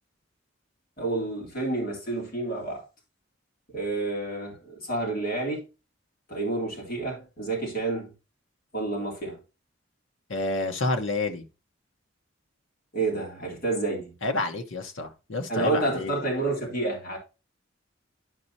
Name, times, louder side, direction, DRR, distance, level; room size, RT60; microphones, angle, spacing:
voice 1, 1.0-2.8 3.7-5.7 6.3-8.1 8.7-9.4 12.9-14.1 15.5-17.2, right 2 dB, 50° left, 3.5 m, -29 dB
voice 2, 10.3-11.4 14.2-16.1, left 2 dB, 80° left, 1.1 m, -29 dB
11.5 x 5.4 x 2.8 m
head